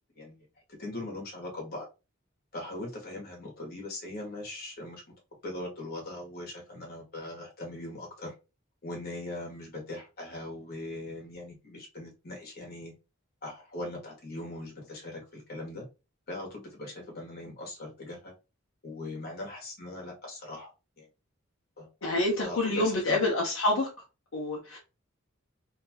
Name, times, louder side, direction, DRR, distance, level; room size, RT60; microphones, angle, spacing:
voice 1, 0.8-1.9 2.5-5.0 5.4-8.3 8.8-12.9 13.4-15.9 16.3-18.3 18.8-20.7 21.0-21.1 21.8-23.2, left 2 dB, 50° left, 1.1 m, -40 dB
voice 2, 22.0-23.9 24.3-24.8, left 2 dB, 75° left, 0.7 m, -27 dB
2.7 x 2.3 x 2.7 m
head